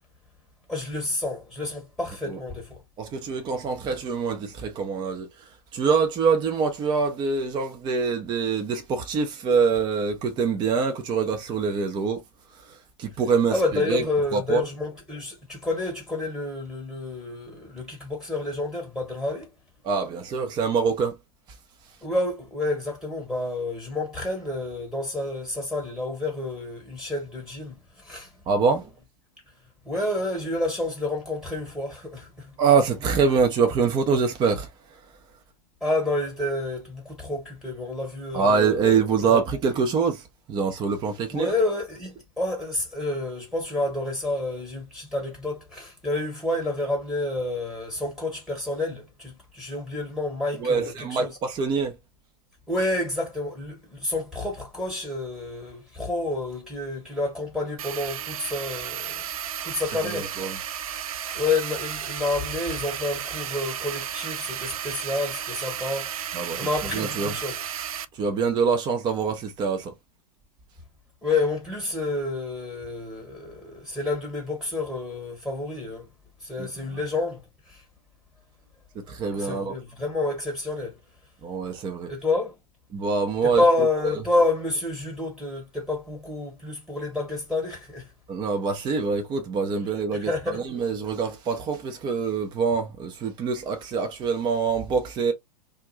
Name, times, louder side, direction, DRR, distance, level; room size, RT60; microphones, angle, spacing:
voice 1, 0.7-2.7 13.5-19.5 22.0-28.3 29.8-32.6 35.8-38.7 39.2-39.4 41.3-51.3 52.7-59.3 59.6-60.3 61.3-66.1 66.6-67.6 71.2-76.1 76.4-77.4 77.7-77.8 79.3-81.0 82.1-82.5 83.4-88.1 90.1-90.7, left 2 dB, 5° right, 1.3 m, -29 dB
voice 2, 3.0-12.2 12.6-14.0 14.3-14.6 19.8-21.2 28.5-28.9 32.6-34.7 38.3-41.5 50.6-51.9 60.0-60.6 66.3-67.3 68.1-69.9 76.6-76.8 79.1-79.7 81.4-82.1 82.9-83.6 88.3-95.3, right 5 dB, 20° right, 0.6 m, -25 dB
sound 1, 57.8-68.0, right 10 dB, 60° right, 0.4 m, -33 dB
2.5 x 2.2 x 3.0 m
figure-of-eight pair, 100°, 21 cm